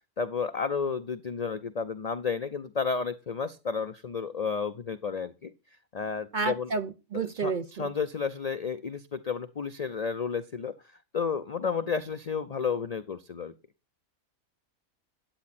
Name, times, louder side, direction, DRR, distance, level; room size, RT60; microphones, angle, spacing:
voice 1, 0.2-5.5 5.9-6.7 7.1-10.7 11.1-13.5, left 5 dB, 60° left, 0.4 m, -32 dB
voice 2, 6.3-7.9, right 4 dB, 50° right, 0.6 m, -31 dB
10.0 x 8.5 x 4.2 m
omnidirectional pair, 1.5 m